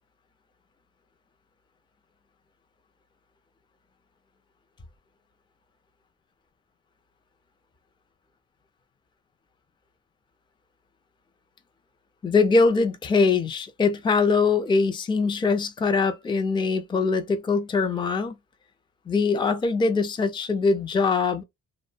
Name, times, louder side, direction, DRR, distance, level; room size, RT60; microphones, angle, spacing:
voice 1, 12.2-18.4 19.1-21.4, left 4 dB, 15° left, 0.4 m, -22 dB
2.7 x 2.0 x 2.4 m
cardioid pair, 90°, 30 cm